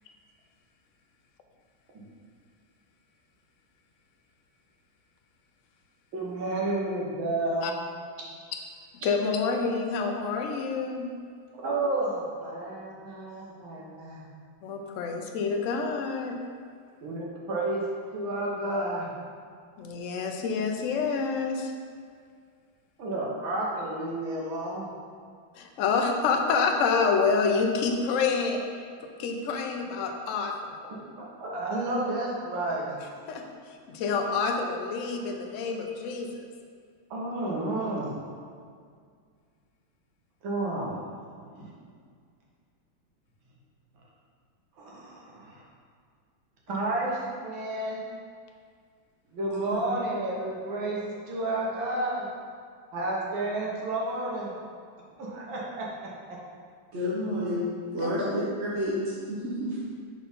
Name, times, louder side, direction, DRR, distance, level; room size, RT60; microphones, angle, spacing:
voice 1, 6.1-7.8 11.6-14.2 17.0-17.9 18.1-19.1 23.0-24.9 30.9-33.0 37.1-38.1 40.4-41.0 41.5-41.7 44.8-45.6 46.7-48.0 49.3-52.3 52.9-54.5 55.2-55.9 58.4-58.5, right 2 dB, 85° right, -4 dB, 1.9 m, -31 dB
voice 2, 9.0-11.1 14.6-16.4 19.8-21.7 25.6-30.7 33.3-36.5 58.0-58.3, left 4 dB, 85° left, 3 dB, 0.6 m, -28 dB
voice 3, 56.9-57.7 57.9-59.8, equal, 50° right, -7 dB, 0.9 m, -30 dB
4.7 x 4.2 x 5.3 m, 2.1 s
omnidirectional pair, 2.1 m